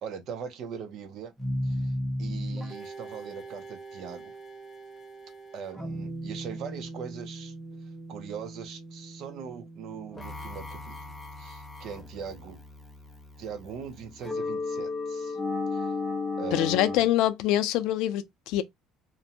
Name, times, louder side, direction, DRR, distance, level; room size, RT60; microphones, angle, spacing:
voice 1, 0.0-1.3 1.6-1.9 2.2-4.3 5.5-7.5 8.1-11.0 11.4-12.6 13.4-15.4 15.7-15.9 16.4-17.1, right 7 dB, 45° right, 0.6 m, -40 dB
sound 1, 1.4-17.0, left 2 dB, 5° left, 0.5 m, -36 dB
voice 2, 16.5-18.6, left 13 dB, 65° left, 0.4 m, -25 dB
2.5 x 2.1 x 2.8 m
cardioid pair, 170°, 0 cm